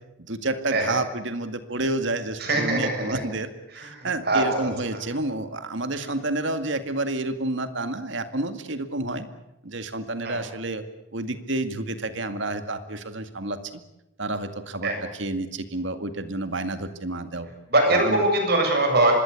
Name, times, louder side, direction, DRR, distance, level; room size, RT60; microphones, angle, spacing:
voice 1, 0.2-9.3 9.6-10.8 11.1-13.8 14.2-17.5 17.9-18.2, right 2 dB, 65° right, 9 dB, 2.1 m, -30 dB
voice 2, 2.4-3.2 3.7-4.7 10.2-10.4 14.8-15.0 17.7-19.1, right 2 dB, 50° right, 4 dB, 7.5 m, -22 dB
25.5 x 21.0 x 8.5 m, 0.89 s
head